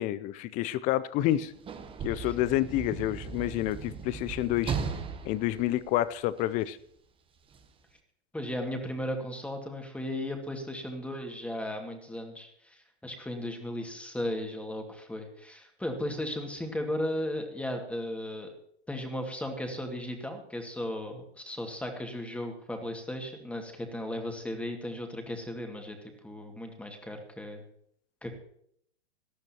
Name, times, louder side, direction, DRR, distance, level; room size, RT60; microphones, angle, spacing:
voice 1, 0.0-1.5 2.0-4.7 5.2-6.8, left 14 dB, 25° left, 17 dB, 0.5 m, -29 dB
Sliding door / Slam, 1.2-6.6 7.5-7.7, right 6 dB, 15° right, 1.0 m, -37 dB
voice 2, 8.3-18.5 18.9-26.0 26.2-27.6 28.2-28.3, left 1 dB, 5° left, 3 dB, 2.1 m, -36 dB
18.5 x 13.0 x 3.0 m, 0.68 s
hypercardioid pair, 110°, 34 cm